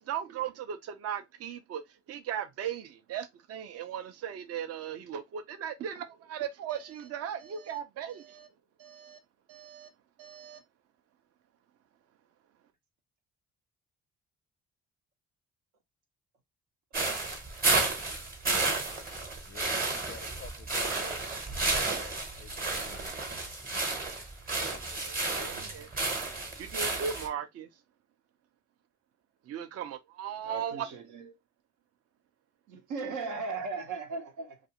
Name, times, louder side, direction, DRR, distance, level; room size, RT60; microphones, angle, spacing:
voice 1, 0.0-8.5 8.8-9.2 9.5-9.9 10.2-10.6 25.0-25.9 26.4-27.7 29.4-30.9, right 8 dB, 55° right, 0.5 m, -37 dB
sound 1, 16.9-27.3, right 3 dB, 30° right, 0.9 m, -32 dB
voice 2, 19.4-21.2 21.7-23.1 24.7-25.0, left 7 dB, 40° left, 0.4 m, -50 dB
voice 3, 30.4-31.4 32.7-34.6, right 4 dB, 80° right, 0.8 m, -37 dB
2.5 x 2.4 x 2.7 m
cardioid pair, 90°, 30 cm